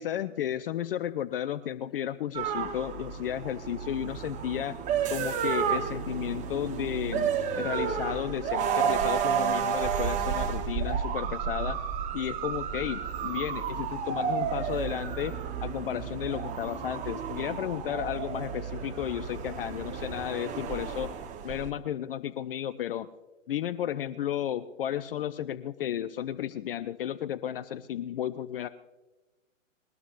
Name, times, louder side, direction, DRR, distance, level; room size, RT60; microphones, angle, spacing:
voice 1, 0.0-4.8 5.1-7.3 7.6-11.8 12.1-21.1 21.4-23.1 23.5-28.7, left 10 dB, 45° left, 13 dB, 0.6 m, -33 dB
sound 1, 2.3-21.7, right 7 dB, 20° right, 1.0 m, -31 dB
22.0 x 19.0 x 2.5 m, 1.1 s
hypercardioid pair, 125°, 40 cm